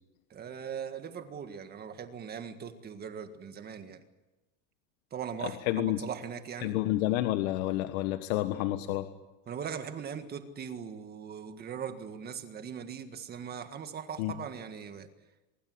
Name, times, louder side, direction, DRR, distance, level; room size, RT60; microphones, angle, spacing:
voice 1, 0.3-4.0 5.1-6.8 9.5-15.1, right 7 dB, 20° right, 8 dB, 1.7 m, -40 dB
voice 2, 5.4-6.0 6.6-9.1 14.2-14.3, left 15 dB, 65° left, 8 dB, 1.5 m, -29 dB
24.5 x 22.5 x 7.9 m, 1.1 s
supercardioid pair, 165°, 43 cm